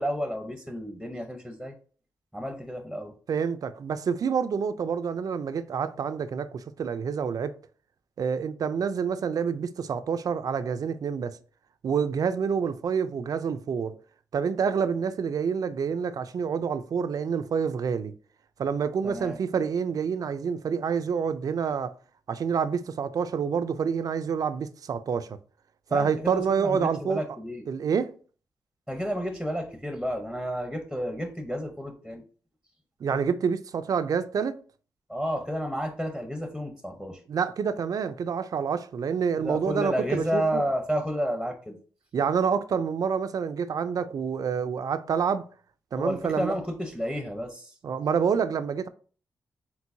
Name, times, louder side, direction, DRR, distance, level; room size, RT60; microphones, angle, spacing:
voice 1, 0.0-1.7 2.3-3.1 19.0-19.4 25.9-27.6 28.9-32.2 35.1-37.2 39.4-41.8 46.0-47.7, equal, 5° left, 0.8 m, -31 dB
voice 2, 3.3-7.5 8.2-11.4 11.8-13.9 14.3-18.1 18.6-21.9 22.3-25.4 25.9-27.2 27.7-28.1 33.0-34.6 37.3-40.6 42.1-45.5 45.9-46.5 47.8-48.9, right 6 dB, 60° right, 0.4 m, -27 dB
4.5 x 3.8 x 2.6 m
cardioid pair, 90°, 7 cm